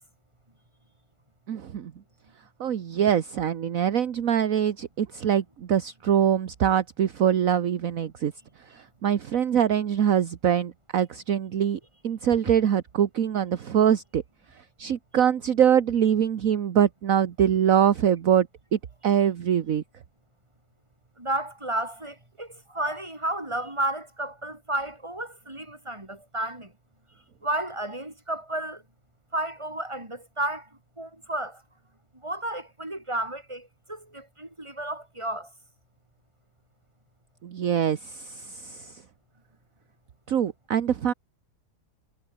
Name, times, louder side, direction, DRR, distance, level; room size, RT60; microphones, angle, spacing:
voice 1, 1.5-1.9 2.6-8.3 8.7-14.2 14.8-18.5 18.7-19.8 37.4-38.9 40.3-41.1, right 9 dB, 60° right, 1.4 m, -24 dB
voice 2, 21.2-26.7 27.4-28.8 29.3-30.7 31.0-31.6 32.2-35.5, right 1 dB, 15° right, 4.5 m, -32 dB
omnidirectional pair, 1.7 m